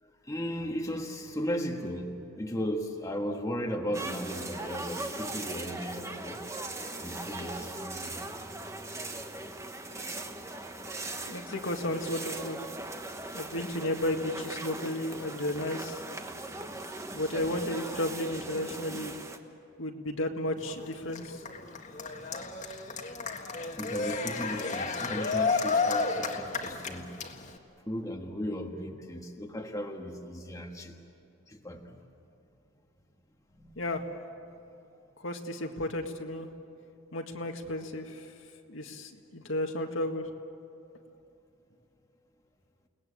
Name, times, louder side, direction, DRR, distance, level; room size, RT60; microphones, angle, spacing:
voice 1, 0.0-6.4 7.0-8.2 23.8-27.1 27.9-31.0 31.5-32.0 33.5-33.7, equal, 15° left, 2 dB, 1.5 m, -36 dB
sound 1, 3.9-19.4, right 2 dB, 15° right, 1.3 m, -39 dB
voice 2, 11.2-12.6 13.3-16.0 17.1-19.1 19.8-21.4 33.8-34.0 35.2-36.5 37.1-38.2 38.7-40.3, left 1 dB, 75° left, 3 dB, 2.0 m, -33 dB
Cheering, 20.6-27.6, left 4 dB, 40° left, 1.7 m, -32 dB
29.5 x 19.5 x 8.6 m, 2.6 s
head